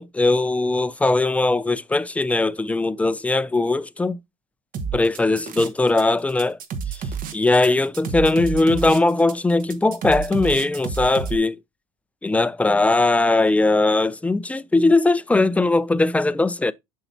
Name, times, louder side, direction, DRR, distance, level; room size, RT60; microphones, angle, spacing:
voice 1, 0.0-4.2 4.9-6.6 6.9-7.0 7.3-11.6 12.2-16.7, left 2 dB, 5° left, 0.4 m, -20 dB
sound 1, 4.7-6.0 6.3-11.4, right 6 dB, 45° right, 1.2 m, -30 dB
6.8 x 5.6 x 2.7 m
supercardioid pair, 100°, 19 cm